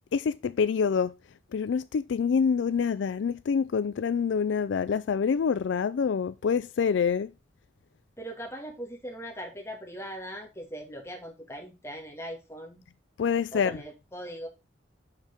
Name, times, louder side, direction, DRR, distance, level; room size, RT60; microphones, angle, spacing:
voice 1, 0.1-1.1 1.5-7.3 13.2-13.7, left 6 dB, 75° left, 0.4 m, -26 dB
voice 2, 8.2-12.8 13.5-14.5, equal, 15° left, 1.9 m, -40 dB
6.6 x 6.0 x 3.5 m
head